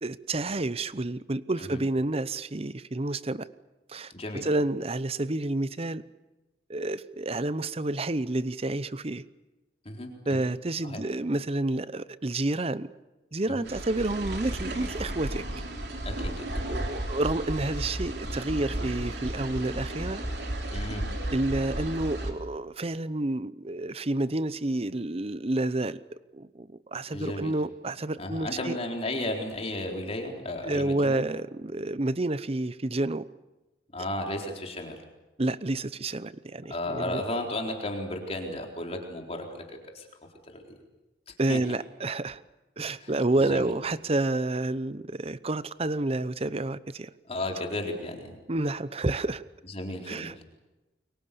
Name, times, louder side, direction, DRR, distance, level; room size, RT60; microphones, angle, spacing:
voice 1, 0.0-3.5 3.9-6.0 6.7-9.2 10.3-12.9 13.3-15.4 16.7-20.2 21.3-26.0 26.3-28.8 30.6-33.2 35.4-37.2 41.4-42.4 42.8-47.1 48.5-49.4 50.1-50.4, right 2 dB, 35° right, 16 dB, 0.8 m, -29 dB
voice 2, 4.1-4.5 9.9-10.5 10.8-11.0 13.5-13.7 16.0-16.5 20.7-21.0 27.1-27.5 28.2-31.2 33.9-35.0 36.7-39.6 39.9-40.1 40.5-40.6 41.5-41.6 43.0-43.1 43.4-43.7 47.3-48.3 49.7-50.3, left 1 dB, 35° left, 2 dB, 4.1 m, -34 dB
sound 1, 13.7-22.3, right 1 dB, 60° right, 3.6 m, -34 dB
30.0 x 23.5 x 7.0 m, 1.1 s
head